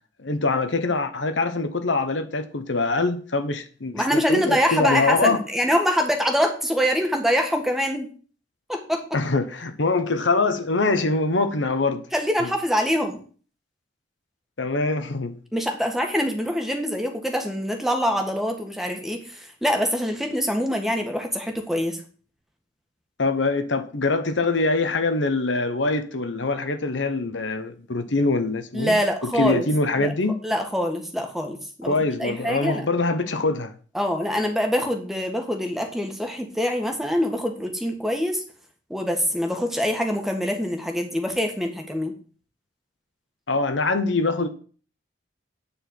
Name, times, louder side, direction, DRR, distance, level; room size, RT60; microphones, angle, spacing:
voice 1, 0.2-5.4 9.1-12.1 12.4-12.5 14.6-15.4 23.2-30.4 31.8-33.7 43.5-44.5, left 3 dB, 80° left, 1.1 m, -24 dB
voice 2, 3.9-8.1 8.7-9.0 12.1-13.2 15.5-22.0 28.7-29.7 30.0-30.1 30.4-31.9 32.2-32.8 33.9-38.4 38.9-42.1, equal, ahead, 1.6 m, -24 dB
10.0 x 4.4 x 7.8 m
head